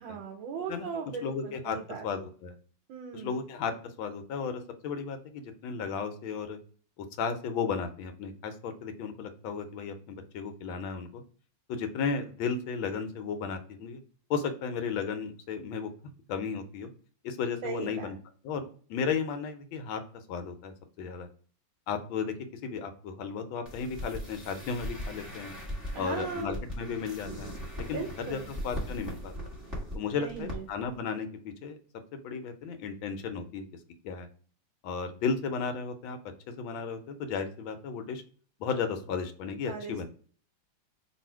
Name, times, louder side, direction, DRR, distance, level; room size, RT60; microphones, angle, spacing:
voice 1, 0.0-2.0 2.9-3.4 17.6-18.0 25.9-26.5 27.9-28.5 30.1-30.6 39.7-40.0, right 6 dB, 85° right, 2 dB, 1.5 m, -38 dB
voice 2, 1.2-1.8 2.0-2.6 3.1-3.7 4.0-6.6 7.0-11.2 11.7-14.0 14.3-15.9 16.3-16.9 17.2-18.2 18.4-20.0 20.3-21.3 21.9-25.5 25.9-29.3 29.9-31.8 32.2-33.7 34.0-34.3 34.8-36.2 36.6-38.2 38.6-40.1, left 5 dB, 85° left, 8 dB, 1.4 m, -34 dB
sound 1, 23.7-30.0 30.3-30.6 30.8-30.9, equal, 10° right, 1.3 m, -39 dB
3.1 x 2.7 x 4.4 m, 0.44 s
omnidirectional pair, 2.1 m